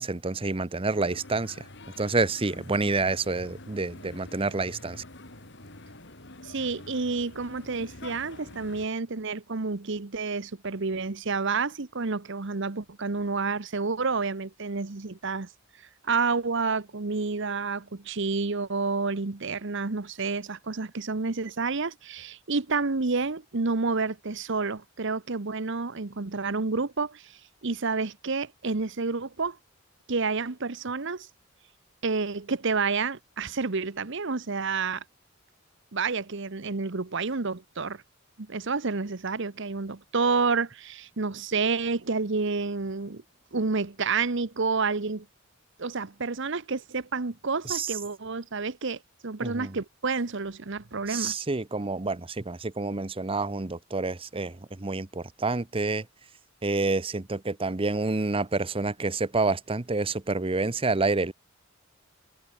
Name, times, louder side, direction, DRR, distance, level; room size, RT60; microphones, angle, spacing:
voice 1, 0.0-1.6 2.0-5.0 47.6-47.9 49.4-49.7 51.1-56.1 56.6-61.3, right 3 dB, 25° right, 0.9 m, -28 dB
sound 1, 0.9-8.9, left 2 dB, 60° left, 5.0 m, -47 dB
voice 2, 6.4-15.5 16.0-27.3 27.6-29.6 30.1-31.3 32.0-35.0 35.9-38.0 38.4-43.2 43.5-45.2 45.8-51.3, right 4 dB, 65° right, 1.1 m, -29 dB
head